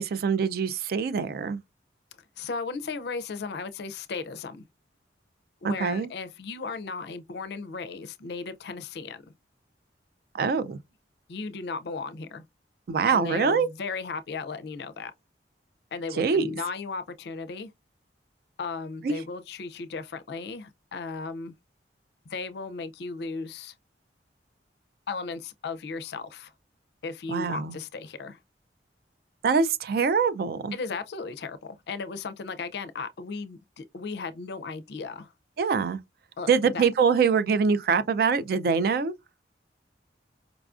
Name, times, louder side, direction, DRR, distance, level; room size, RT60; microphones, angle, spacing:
voice 1, 0.0-1.6 5.6-6.1 10.3-10.8 12.9-13.7 16.2-16.5 19.0-19.2 27.3-27.7 29.4-30.7 35.6-36.0 36.5-39.1, right 5 dB, 55° right, 0.3 m, -24 dB
voice 2, 2.4-4.6 5.6-9.3 11.3-12.4 13.1-15.1 15.9-17.7 18.6-21.5 22.3-23.7 25.1-26.5 27.0-28.4 30.7-35.3 36.4-36.8, left 4 dB, 65° left, 0.4 m, -36 dB
4.9 x 2.4 x 2.4 m
head